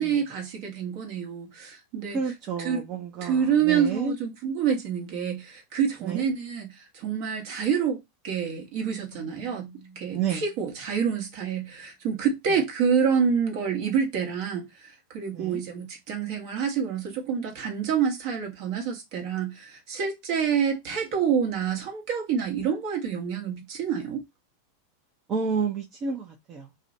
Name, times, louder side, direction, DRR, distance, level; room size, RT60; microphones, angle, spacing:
voice 1, 0.0-2.2 2.6-2.8 3.2-6.7 6.9-8.0 8.2-9.7 10.0-24.2, right 7 dB, 55° right, 1.1 m, -27 dB
voice 2, 2.1-4.2 6.0-6.3 10.1-10.4 12.5-12.6 15.3-15.6 25.3-26.7, right 5 dB, 40° right, 0.6 m, -30 dB
Keyboard (musical), 9.1-11.9, right 3 dB, 70° left, 0.6 m, -53 dB
2.5 x 2.1 x 2.5 m
hypercardioid pair, 95°, 0 cm